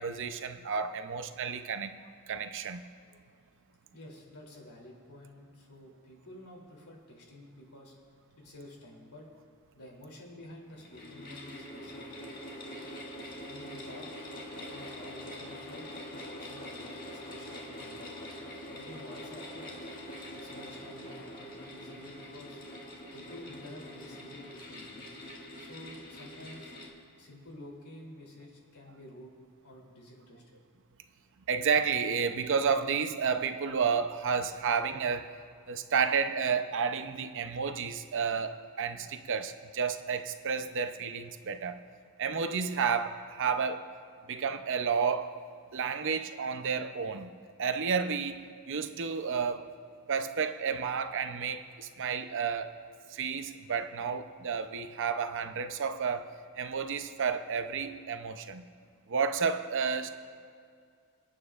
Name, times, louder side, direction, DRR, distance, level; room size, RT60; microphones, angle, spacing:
voice 1, 0.0-1.9 2.3-2.8 31.5-35.3 35.7-41.8 42.2-43.9 44.3-45.3 45.7-47.3 47.6-49.6 50.1-52.7 53.1-56.3 56.6-58.6 59.1-60.1, right 6 dB, 55° right, 8 dB, 0.6 m, -31 dB
voice 2, 3.9-7.9 8.4-9.2 9.7-12.9 13.5-14.1 14.7-18.0 18.7-19.7 20.3-22.6 23.1-25.0 25.6-26.7 27.2-29.3 29.6-30.4, left 1 dB, 80° left, -2 dB, 3.0 m, -50 dB
sound 1, 10.7-26.9, left 1 dB, 40° left, 1.8 m, -44 dB
26.5 x 9.2 x 2.4 m, 2.3 s
head